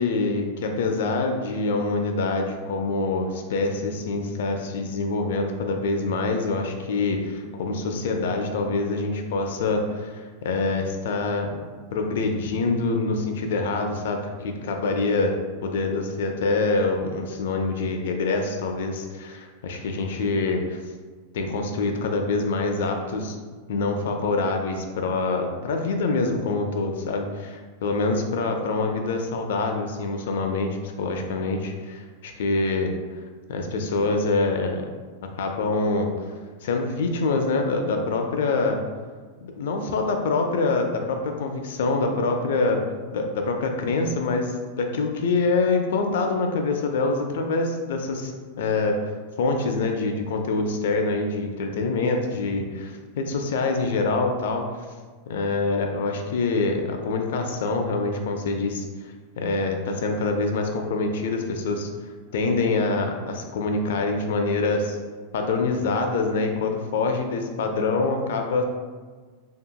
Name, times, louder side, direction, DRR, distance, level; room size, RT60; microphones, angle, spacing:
voice 1, 0.0-11.6 11.9-15.4 15.6-20.8 21.3-23.4 23.7-32.9 33.5-34.9 35.4-36.3 36.6-38.8 39.4-42.8 43.1-49.1 49.4-54.7 55.3-61.9 62.3-65.0 65.3-68.6, left 3 dB, 70° left, 4 dB, 0.3 m, -25 dB
2.8 x 2.7 x 2.2 m, 1.4 s
supercardioid pair, 170°, 0 cm